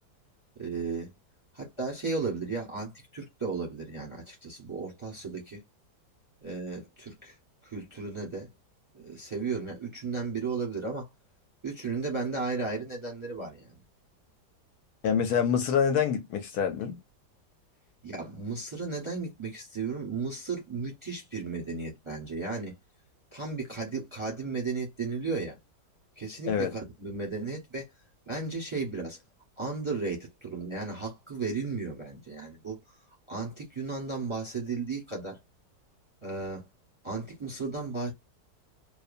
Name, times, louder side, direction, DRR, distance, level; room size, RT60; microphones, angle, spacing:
voice 1, 0.6-1.1 1.5-5.6 6.4-7.3 7.6-8.5 8.9-11.1 11.6-13.7 18.0-22.7 23.3-25.6 26.2-27.9 28.3-29.2 29.6-32.8 33.3-35.4 36.2-36.7 37.0-38.1, right 4 dB, 25° right, 0.7 m, -34 dB
voice 2, 15.0-17.0 26.5-26.7, left 7 dB, 70° left, 1.1 m, -26 dB
2.7 x 2.1 x 2.4 m
omnidirectional pair, 1.8 m